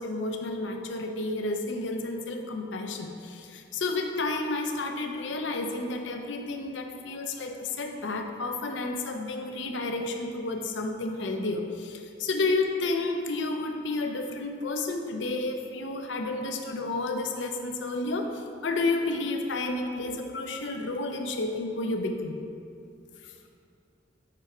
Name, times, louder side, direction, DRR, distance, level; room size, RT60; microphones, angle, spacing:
voice 1, 0.0-22.4 23.2-23.3, left 2 dB, 70° left, 4 dB, 0.6 m, -31 dB
6.8 x 4.7 x 4.4 m, 2.5 s
head